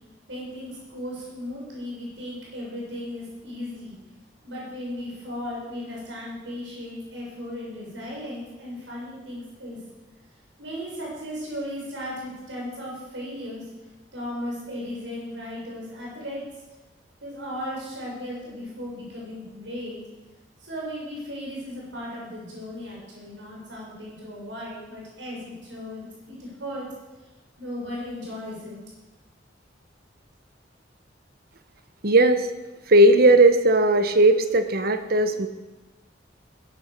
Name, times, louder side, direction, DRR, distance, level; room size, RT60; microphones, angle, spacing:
voice 1, 0.3-4.0 4.4-9.8 10.6-13.7 14.1-16.5 17.2-20.0 20.6-26.9 27.6-28.8, left 1 dB, 80° right, -4 dB, 7.1 m, -36 dB
voice 2, 32.0-32.5 32.9-35.5, right 1 dB, 55° right, 9 dB, 1.1 m, -17 dB
17.0 x 11.5 x 6.8 m, 1.1 s
head